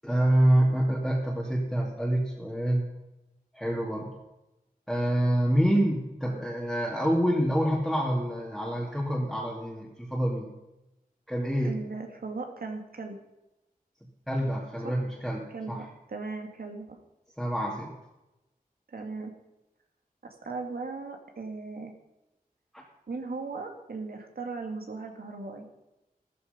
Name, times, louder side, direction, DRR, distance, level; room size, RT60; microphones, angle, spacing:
voice 1, 0.0-2.8 3.5-4.1 4.9-10.5 11.3-11.8 14.3-15.9 17.4-17.9 22.7-22.8, right 1 dB, ahead, -4 dB, 2.5 m, -26 dB
voice 2, 11.6-13.2 14.8-15.0 15.5-17.0 18.9-19.3 20.2-21.9 23.1-25.7, right 3 dB, 85° right, 4 dB, 2.2 m, -37 dB
13.5 x 13.5 x 5.3 m, 0.95 s
wide cardioid pair, 90°, 15 cm